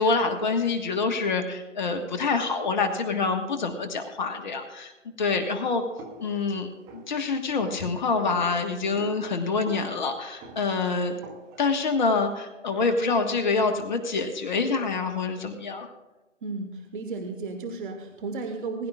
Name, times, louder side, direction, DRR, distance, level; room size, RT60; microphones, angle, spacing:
voice 1, 0.0-5.8 6.2-11.1 11.6-15.9, left 4 dB, 35° left, 5 dB, 1.5 m, -26 dB
sound 1, 6.0-11.7, right 3 dB, 10° right, 0.8 m, -46 dB
voice 2, 16.4-18.9, right 3 dB, 40° right, 4 dB, 1.5 m, -34 dB
21.0 x 11.5 x 2.4 m, 1.1 s
figure-of-eight pair, 145°, 38 cm